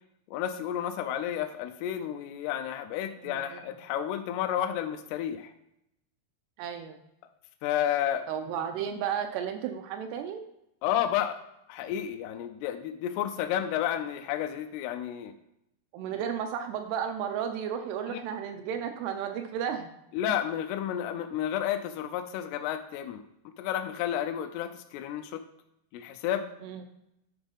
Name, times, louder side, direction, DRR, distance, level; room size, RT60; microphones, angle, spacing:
voice 1, 0.3-5.5 7.6-8.3 10.8-11.4 11.7-15.3 18.1-18.2 20.1-23.2 23.6-25.4 25.9-26.5, left 10 dB, 80° left, 6 dB, 2.4 m, -31 dB
voice 2, 3.2-3.7 6.6-7.0 8.3-10.5 15.9-19.9 26.6-26.9, right 8 dB, 80° right, 6 dB, 2.5 m, -33 dB
10.5 x 4.0 x 5.3 m, 0.83 s
omnidirectional pair, 5.1 m